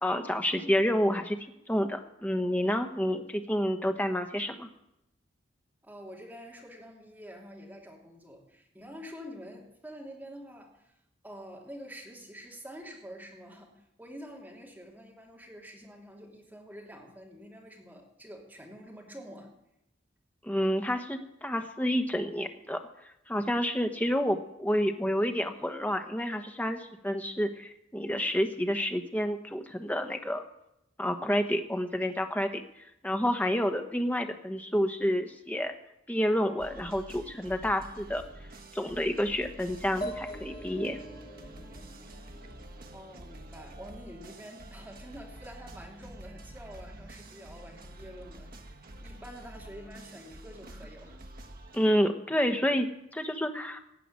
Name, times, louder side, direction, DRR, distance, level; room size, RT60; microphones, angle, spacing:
voice 1, 0.0-1.4 1.7-4.7 20.4-22.8 23.3-30.4 31.0-32.6 33.0-35.7 36.1-38.2 38.7-41.0 51.7-53.8, equal, 10° left, 6 dB, 1.1 m, -29 dB
voice 2, 5.8-11.0 11.2-19.5 42.9-51.2, equal, 10° right, -1 dB, 2.8 m, -47 dB
sound 1, 36.6-51.9, right 1 dB, 50° right, 1.1 m, -48 dB
sound 2, 40.0-43.7, equal, 25° left, 1.7 m, -43 dB
16.5 x 5.9 x 9.7 m, 0.83 s
head